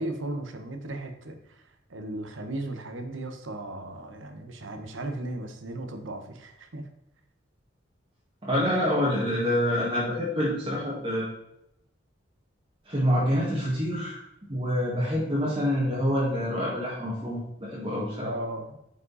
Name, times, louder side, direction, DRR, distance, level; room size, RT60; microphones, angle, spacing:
voice 1, 0.0-1.6 1.9-6.9 18.2-18.8, right 1 dB, 85° right, 7 dB, 1.2 m, -36 dB
voice 2, 8.4-11.3 12.9-14.2 14.5-18.3, equal, 25° right, -6 dB, 1.9 m, -26 dB
9.8 x 5.4 x 4.1 m, 0.82 s
head